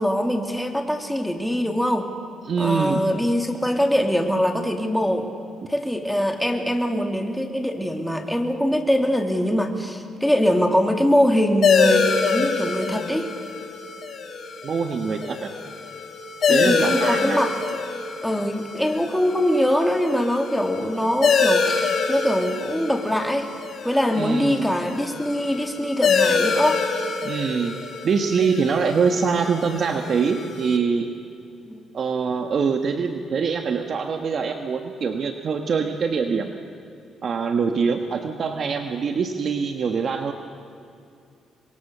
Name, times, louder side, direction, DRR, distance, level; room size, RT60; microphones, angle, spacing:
voice 1, 0.0-2.1 2.6-5.3 5.7-13.3 16.5-17.5 18.2-23.5 23.8-26.8 31.7-31.8, equal, ahead, 4 dB, 2.7 m, -23 dB
voice 2, 2.4-3.0 5.6-5.7 14.6-15.5 16.5-17.4 24.1-24.6 27.2-27.8 28.0-31.1 31.9-36.5 37.2-40.3, right 5 dB, 55° right, 5 dB, 1.4 m, -24 dB
sound 1, 11.6-30.8, left 5 dB, 55° left, 3.3 m, -25 dB
25.5 x 22.0 x 6.8 m, 2.6 s
cardioid pair, 90°, 0 cm